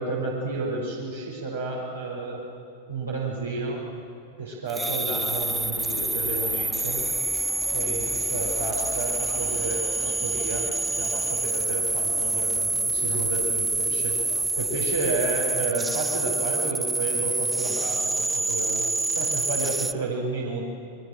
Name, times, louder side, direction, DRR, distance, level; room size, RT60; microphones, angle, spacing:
voice 1, 0.0-2.4 2.9-3.8 4.4-7.1 7.7-14.2 14.6-18.9 19.1-20.7, right 3 dB, 75° right, -4 dB, 5.0 m, -31 dB
sound 1, 4.7-19.9, right 2 dB, 10° right, 0.7 m, -27 dB
sound 2, 5.1-15.4, left 7 dB, 60° left, 2.6 m, -42 dB
30.0 x 22.5 x 7.6 m, 2.5 s
figure-of-eight pair, 90°, 0 cm